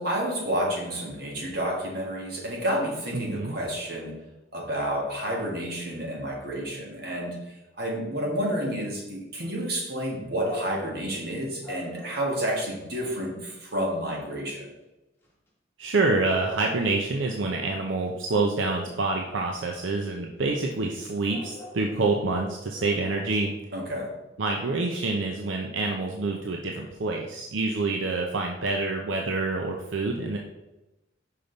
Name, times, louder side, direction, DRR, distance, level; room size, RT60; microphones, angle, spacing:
voice 1, 0.0-4.2 4.5-14.7 23.7-24.1, equal, 55° right, -2 dB, 1.7 m, -30 dB
voice 2, 3.1-3.6 15.8-23.5 24.4-30.4, right 3 dB, 80° right, 1 dB, 0.6 m, -27 dB
sound 1, 10.4-11.0 11.6-12.3 13.2-13.3 13.7-13.8 14.1-14.6 15.2-15.5 19.1-19.2 19.5-19.6 21.0-21.1 21.3-23.3, left 1 dB, 10° left, 1.4 m, -44 dB
5.7 x 5.1 x 3.9 m, 1.0 s
head